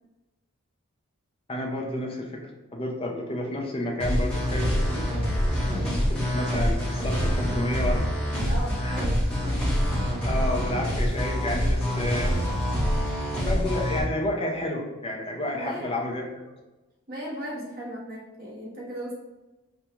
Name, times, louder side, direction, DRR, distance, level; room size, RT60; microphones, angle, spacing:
voice 1, 1.5-5.1 5.8-8.1 8.8-9.0 10.2-12.4 13.4-16.4, left 1 dB, 25° left, 0 dB, 0.6 m, -31 dB
sound 1, 4.0-14.0, equal, 5° left, 0.9 m, -26 dB
voice 2, 8.4-10.0 15.5-16.0 17.1-19.2, equal, 40° right, -4 dB, 1.2 m, -37 dB
5.3 x 2.3 x 3.0 m, 1.1 s
head